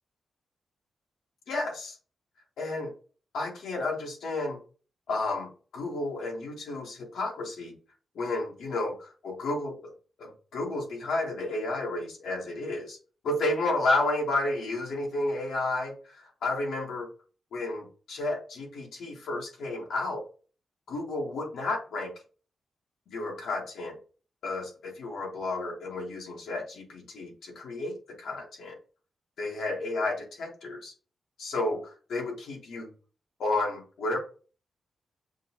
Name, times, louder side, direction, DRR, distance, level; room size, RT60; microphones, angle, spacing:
voice 1, 1.5-2.0 2.6-2.9 3.3-4.6 5.1-7.7 8.1-9.9 10.2-13.0 13.2-17.1 17.5-20.2 20.9-22.1 23.1-24.0 24.4-28.8 29.4-30.9 31.4-32.9 33.4-34.2, left 2 dB, 90° left, -1 dB, 1.2 m, -32 dB
6.2 x 2.2 x 2.9 m, 0.37 s
cardioid pair, 90°, 0 cm